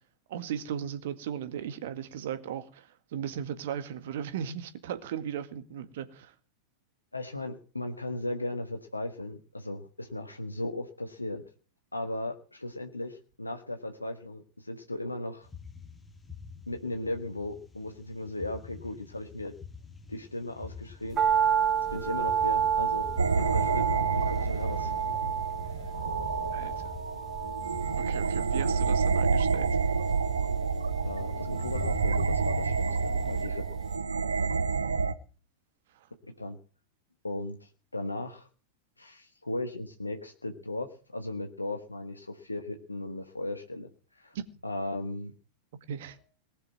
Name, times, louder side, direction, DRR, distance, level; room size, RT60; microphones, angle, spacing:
voice 1, 0.3-6.3 26.5-26.9 28.0-29.7 35.9-36.1 44.3-44.4 45.9-46.2, right 9 dB, 55° right, 1.8 m, -37 dB
voice 2, 7.1-11.4 11.9-15.5 16.7-19.5 20.1-21.2 21.9-23.1 23.3-23.8 24.2-24.9 25.7-25.9 31.0-33.6 36.4-36.6 37.2-38.5 39.0-43.9 44.2-44.4 44.6-45.3, left 2 dB, 85° left, 1.4 m, -36 dB
sound 1, 15.4-33.4, left 5 dB, 10° left, 1.7 m, -45 dB
sound 2, 21.2-33.4 33.7-33.8, right 8 dB, 30° right, 3.9 m, -31 dB
sound 3, 23.2-35.1, right 5 dB, 75° right, 0.8 m, -29 dB
19.0 x 6.8 x 9.3 m
figure-of-eight pair, 90°, 0 cm